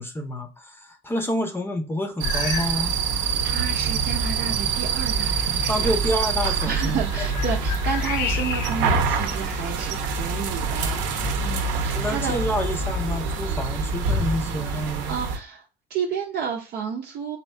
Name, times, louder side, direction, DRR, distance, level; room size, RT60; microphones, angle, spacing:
voice 1, 0.0-2.9 5.7-7.3 11.9-15.1, equal, 10° left, 0.5 m, -28 dB
sound 1, 2.2-2.9 3.1-3.5 4.2-4.3 6.6-9.0 9.5-10.5, left 8 dB, 65° left, 0.6 m, -33 dB
sound 2, 2.2-15.4, right 5 dB, 80° right, 0.8 m, -26 dB
voice 2, 3.4-5.9 6.7-11.0 11.4-12.4 14.1-14.3 14.7-17.4, right 6 dB, 50° right, 0.6 m, -31 dB
sound 3, 3.5-14.6, left 5 dB, 15° right, 1.0 m, -36 dB
4.2 x 2.7 x 3.2 m
cardioid pair, 155°, 20 cm